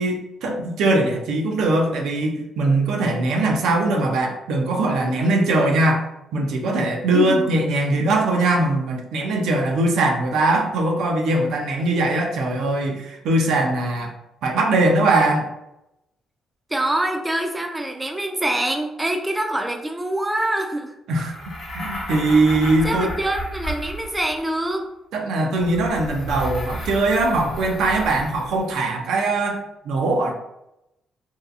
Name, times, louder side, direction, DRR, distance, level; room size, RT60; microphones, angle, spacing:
voice 1, 0.0-6.0 6.3-14.1 14.4-15.5 21.1-23.1 25.1-30.3, right 2 dB, 80° right, 2 dB, 0.4 m, -21 dB
voice 2, 7.1-7.5 16.7-20.9 22.8-24.9, right 1 dB, 10° right, 3 dB, 0.3 m, -25 dB
sound 1, 21.2-24.5 25.6-28.7, equal, 55° left, 0.9 m, -33 dB
2.6 x 2.3 x 2.4 m, 0.87 s
cardioid pair, 90°, 0 cm